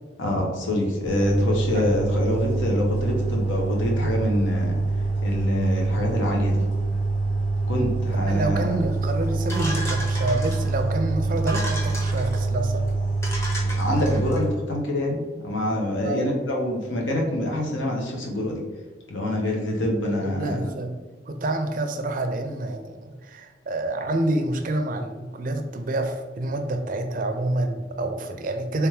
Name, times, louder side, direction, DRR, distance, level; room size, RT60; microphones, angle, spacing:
voice 1, 0.2-4.8 5.2-6.6 7.7-8.7 13.8-18.6 19.1-20.7, left 1 dB, 85° left, -1 dB, 0.9 m, -26 dB
sound 1, 1.0-14.4, right 3 dB, 65° left, 1.5 m, -25 dB
voice 2, 8.1-12.9 16.0-16.3 20.2-20.9 21.3-28.9, right 2 dB, 45° right, 6 dB, 0.4 m, -28 dB
sound 2, 9.5-10.8 11.4-12.4 12.9-13.0 13.2-14.4, equal, 15° left, 0.6 m, -34 dB
3.4 x 3.4 x 3.1 m, 1.3 s
head